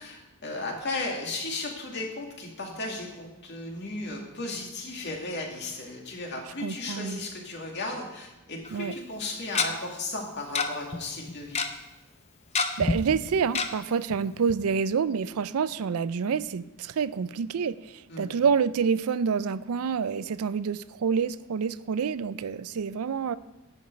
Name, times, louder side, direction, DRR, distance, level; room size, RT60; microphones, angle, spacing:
voice 1, 0.0-11.6 18.1-18.3, left 2 dB, 50° left, 0 dB, 2.3 m, -35 dB
voice 2, 6.6-7.2 8.7-8.9 12.8-23.4, right 6 dB, 75° right, 16 dB, 0.4 m, -28 dB
Tick-tock, 8.7-8.8 9.6-9.7 10.6-10.7 10.9-11.0 11.3-11.7 12.6-13.0 13.6-13.7 14.1-14.2 14.5-14.6, left 4 dB, 30° left, 0.7 m, -25 dB
10.5 x 5.3 x 7.7 m, 1.0 s
head